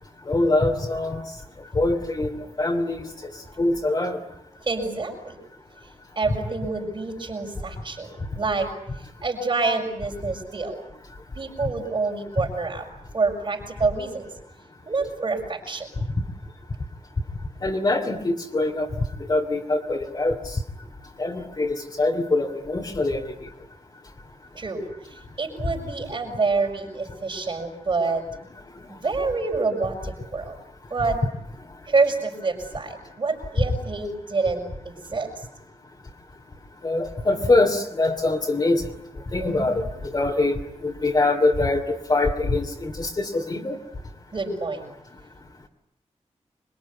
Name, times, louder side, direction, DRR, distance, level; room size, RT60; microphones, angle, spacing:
voice 1, 0.3-1.2 1.7-3.0 3.6-4.2 17.6-18.9 19.3-20.6 21.2-23.2 36.8-38.8 39.3-43.8, left 2 dB, 35° left, 2 dB, 2.8 m, -23 dB
voice 2, 4.6-5.4 6.2-8.7 9.0-10.8 11.3-12.9 13.1-14.3 14.9-15.9 24.5-28.2 28.9-30.6 30.9-31.2 31.9-35.4 39.4-39.8 44.3-44.8, right 3 dB, 40° right, -3 dB, 5.7 m, -27 dB
26.5 x 23.5 x 9.8 m, 0.78 s
wide cardioid pair, 155°, 12 cm